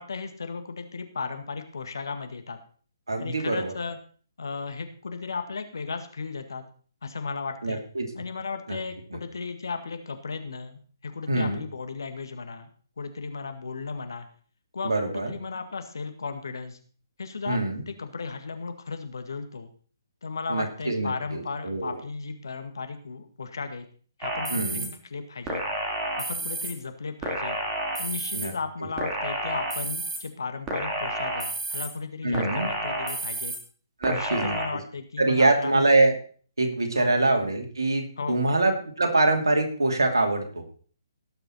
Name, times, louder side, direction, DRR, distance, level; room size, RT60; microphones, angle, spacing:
voice 1, 0.0-2.6 3.2-4.0 4.4-6.6 7.0-7.8 8.1-12.7 13.0-14.3 14.7-16.8 17.2-19.7 20.2-23.9 24.2-24.9 25.1-25.6 26.2-27.6 28.0-33.5 34.1-35.7 36.9-37.1 38.2-38.5, left 4 dB, 65° left, 7 dB, 1.8 m, -35 dB
voice 2, 3.1-3.7 7.6-8.1 8.7-8.8 9.1-9.2 11.3-11.6 14.8-15.3 17.5-17.8 20.5-22.0 24.5-24.9 28.3-28.5 28.8-28.9 32.2-32.7 34.0-34.8 35.2-36.1 36.6-40.6, right 2 dB, 70° right, 4 dB, 2.6 m, -24 dB
sound 1, 24.2-24.9 25.5-26.7 27.2-28.5 29.0-30.2 30.7-31.9 32.3-33.6 34.0-34.7, right 2 dB, 15° right, 2.5 m, -30 dB
18.0 x 6.7 x 4.2 m, 0.43 s
figure-of-eight pair, 135°, 2 cm